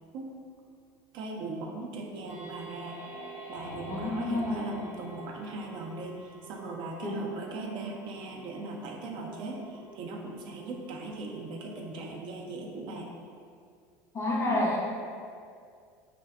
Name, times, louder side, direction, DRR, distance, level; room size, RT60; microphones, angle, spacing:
voice 1, 1.1-3.0 3.5-13.1, right 2 dB, 55° right, 0 dB, 0.4 m, -39 dB
sound 1, 2.2-6.7, left 1 dB, 80° left, 0.6 m, -47 dB
sound 2, 2.3-12.1, right 6 dB, 15° right, 0.6 m, -50 dB
voice 2, 3.9-4.7 7.0-7.2 14.1-14.8, left 1 dB, 30° left, -3 dB, 0.6 m, -29 dB
2.6 x 2.1 x 2.3 m, 2.3 s
hypercardioid pair, 90°, 10 cm